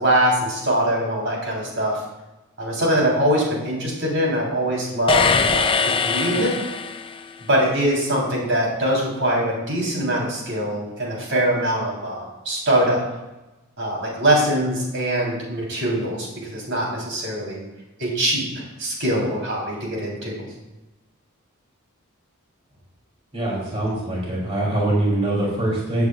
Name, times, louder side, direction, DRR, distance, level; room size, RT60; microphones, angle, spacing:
voice 1, 0.0-2.0 2.6-6.5 7.5-13.0 13.8-17.6 18.0-20.4, right 1 dB, 60° right, -3 dB, 3.7 m, -23 dB
sound 1, 5.1-7.3, left 5 dB, 25° left, 0.5 m, -21 dB
voice 2, 23.3-26.0, right 1 dB, 30° right, -5 dB, 3.1 m, -23 dB
16.0 x 8.2 x 2.5 m, 1.0 s
head